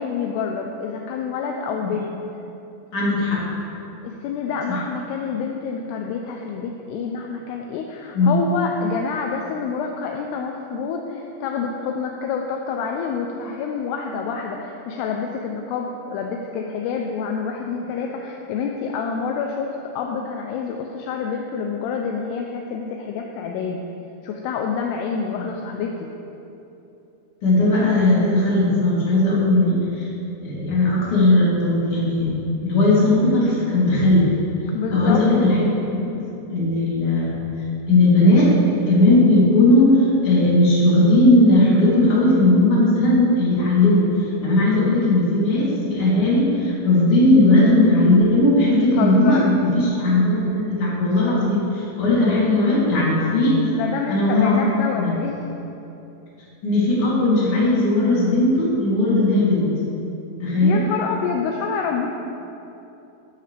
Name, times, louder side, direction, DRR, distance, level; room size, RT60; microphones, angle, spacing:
voice 1, 0.0-2.2 4.0-23.9 24.2-26.1 34.7-35.2 48.7-49.5 53.7-55.5 60.6-62.1, left 5 dB, 80° left, 2 dB, 2.5 m, -27 dB
voice 2, 2.9-3.4 8.1-8.4 27.4-30.1 30.4-32.4 32.6-34.3 34.9-36.2 36.5-37.4 37.9-44.1 44.4-53.6 54.1-54.6 55.0-55.1 56.6-59.7 60.4-60.8, left 2 dB, 35° left, -8 dB, 3.3 m, -17 dB
13.5 x 11.5 x 3.3 m, 2.9 s
omnidirectional pair, 5.2 m